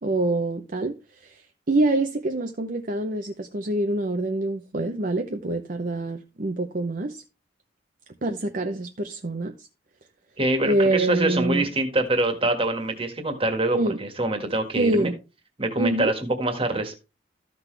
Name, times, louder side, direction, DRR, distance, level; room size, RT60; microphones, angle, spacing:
voice 1, 0.0-7.2 8.2-9.7 10.6-11.7 13.7-14.0 14.8-15.1 15.8-16.1, right 2 dB, 45° right, 0.8 m, -26 dB
voice 2, 10.4-15.1 15.6-17.0, right 2 dB, 30° right, 1.8 m, -25 dB
14.0 x 6.1 x 3.3 m
head